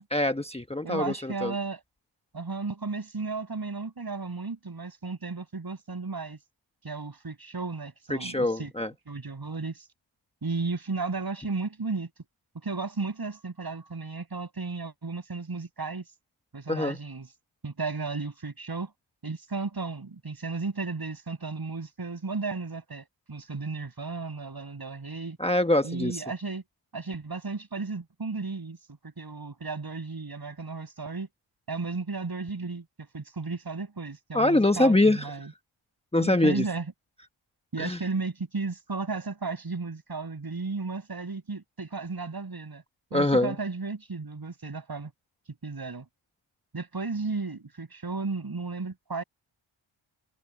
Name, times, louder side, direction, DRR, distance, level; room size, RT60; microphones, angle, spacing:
voice 1, 0.1-1.5 8.1-8.9 16.7-17.0 25.4-26.2 34.3-35.3 36.1-36.7 37.8-38.0 43.1-43.5, left 1 dB, 10° left, 1.2 m, -24 dB
voice 2, 0.8-1.8 2.3-6.4 6.8-8.7 9.1-9.8 10.4-12.1 12.6-16.0 16.5-17.3 17.6-18.9 19.2-25.4 25.8-26.6 26.9-28.8 29.0-31.3 31.7-35.5 36.2-36.9 37.7-42.8 43.1-45.1 45.6-46.1 46.7-49.2, right 4 dB, 45° right, 7.2 m, -34 dB
cardioid pair, 60°, 50 cm